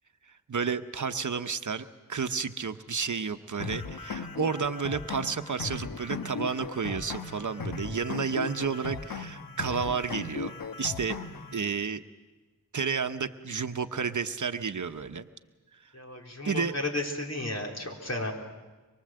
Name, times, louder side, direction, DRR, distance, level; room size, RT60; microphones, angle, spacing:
voice 1, 0.5-11.2 11.5-12.0 12.7-15.3 16.4-16.7, right 5 dB, 60° right, 8 dB, 0.9 m, -31 dB
sound 1, 3.6-11.6, left 5 dB, 80° left, 1.1 m, -37 dB
voice 2, 15.9-18.3, left 2 dB, 50° left, 0 dB, 4.0 m, -33 dB
24.5 x 23.5 x 7.7 m, 1.2 s
wide cardioid pair, 80°, 34 cm